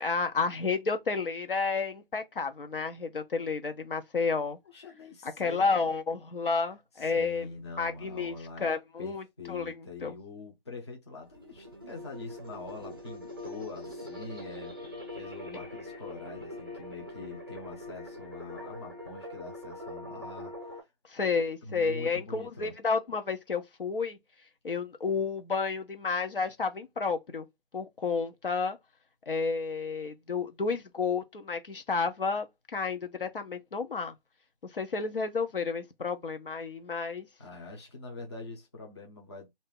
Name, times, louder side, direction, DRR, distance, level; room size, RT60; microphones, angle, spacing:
voice 1, 0.0-4.6 5.2-7.5 7.8-8.3 8.6-10.1 21.1-24.2 24.6-27.5 27.7-28.8 29.3-34.1 34.7-37.3, left 4 dB, 65° left, 1.0 m, -31 dB
voice 2, 4.6-5.8 7.0-20.9 21.6-22.7 37.4-39.5, left 3 dB, 30° left, 0.9 m, -44 dB
sound 1, 11.2-20.8, left 1 dB, 25° right, 0.6 m, -43 dB
2.8 x 2.7 x 3.7 m
hypercardioid pair, 180°, 29 cm